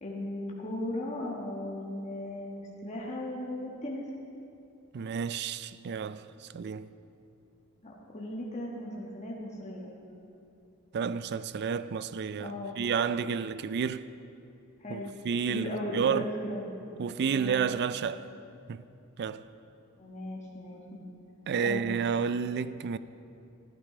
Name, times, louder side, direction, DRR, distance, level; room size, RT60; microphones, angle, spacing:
voice 1, 0.0-4.1 7.8-9.9 12.4-12.8 14.8-15.1 15.5-16.7 17.3-17.7 20.0-21.0 21.6-21.9, left 1 dB, 30° left, 1.3 m, -37 dB
voice 2, 4.9-6.9 10.9-14.1 14.9-16.3 17.0-18.3 18.7-18.8 19.2-19.5 21.5-23.0, right 6 dB, 50° right, 0.3 m, -31 dB
13.0 x 11.5 x 4.9 m
head